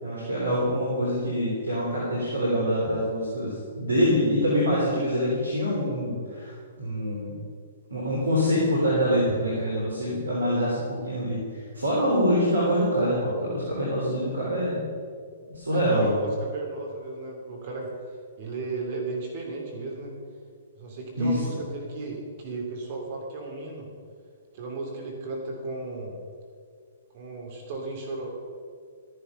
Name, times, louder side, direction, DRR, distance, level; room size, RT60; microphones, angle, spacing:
voice 1, 0.0-7.3 7.9-11.4 11.7-14.8 15.5-16.2 21.2-21.4, equal, 85° right, -5 dB, 3.4 m, -25 dB
voice 2, 15.7-17.9 18.4-20.1 20.7-23.9 24.5-26.1 27.1-28.3, right 3 dB, 45° right, 0 dB, 2.8 m, -35 dB
13.5 x 10.0 x 5.6 m, 2.1 s
figure-of-eight pair, 115°, 0 cm